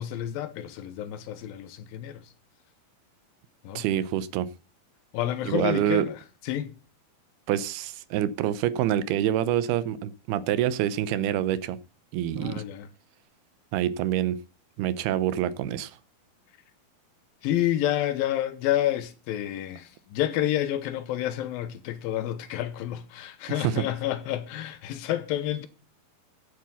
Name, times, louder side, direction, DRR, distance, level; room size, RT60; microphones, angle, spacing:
voice 1, 0.0-2.3 3.6-3.9 5.1-6.2 6.4-6.7 12.4-12.9 17.4-25.7, left 12 dB, 75° left, 2.5 m, -29 dB
voice 2, 3.8-4.5 5.5-6.1 7.5-11.8 12.1-12.6 13.7-14.4 14.8-16.0 23.6-23.8, right 11 dB, 85° right, 2.8 m, -26 dB
11.0 x 7.8 x 6.9 m
omnidirectional pair, 4.4 m